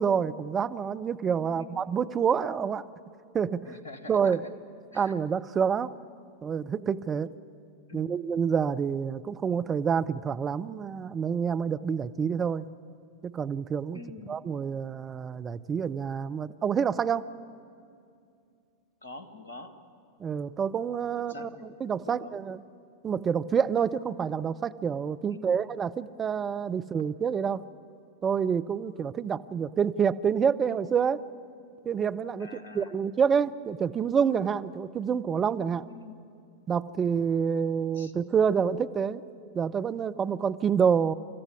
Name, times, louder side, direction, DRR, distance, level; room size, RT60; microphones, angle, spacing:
voice 1, 0.0-2.8 3.3-3.6 4.1-4.4 4.9-5.9 6.4-7.3 7.9-12.6 13.2-14.0 14.3-17.3 20.2-21.5 21.8-22.6 23.0-27.6 28.2-31.2 31.8-32.5 32.7-35.9 36.7-39.2 39.5-41.1, right 7 dB, 20° right, 11 dB, 0.6 m, -27 dB
voice 2, 1.4-1.8 3.6-4.5 4.9-5.2 7.9-8.1 13.9-14.4 19.0-19.7 21.2-21.6 22.1-22.4 25.3-25.6 32.4-33.0 35.9-36.2 37.9-38.1, left 3 dB, 70° left, 9 dB, 1.7 m, -45 dB
29.5 x 14.0 x 9.6 m, 2.4 s
figure-of-eight pair, 90°, 0 cm